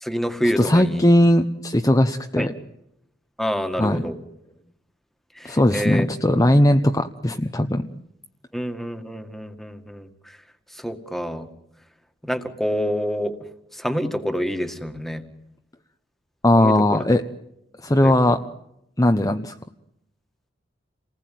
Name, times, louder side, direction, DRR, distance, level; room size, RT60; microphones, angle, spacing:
voice 1, 0.0-1.1 2.4-2.5 3.4-4.2 5.4-6.1 8.5-10.1 10.8-11.5 12.2-13.4 13.7-15.2 16.6-17.1 18.0-18.1, equal, ahead, 8 dB, 2.0 m, -27 dB
voice 2, 0.6-2.5 3.8-4.0 5.4-7.9 16.4-17.2 17.8-18.4 19.0-19.5, left 1 dB, 20° left, 6 dB, 1.0 m, -18 dB
29.0 x 20.0 x 9.4 m, 0.82 s
head